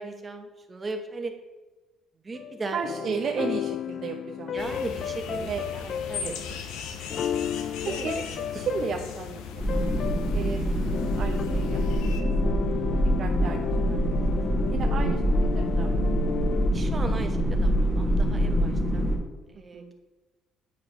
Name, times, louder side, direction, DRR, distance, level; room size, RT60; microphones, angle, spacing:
voice 1, 0.0-1.3 2.2-2.8 4.5-6.3 7.8-8.1 16.7-19.1 19.5-19.8, right 3 dB, 25° right, 5 dB, 1.0 m, -37 dB
sound 1, 2.3-16.7, left 9 dB, 50° left, 0.3 m, -34 dB
voice 2, 2.7-4.6 5.3-6.6 8.0-8.2 8.5-10.8 11.2-11.8 12.4-12.6 13.2-14.1 14.5-16.2 19.7-19.9, right 6 dB, 45° right, 2 dB, 0.6 m, -35 dB
sound 2, 4.6-12.2, left 6 dB, 90° left, 0.9 m, -39 dB
sound 3, 9.6-19.2, equal, 5° left, 2.2 m, -25 dB
8.3 x 4.9 x 5.3 m, 1.2 s
cardioid pair, 130°, 0 cm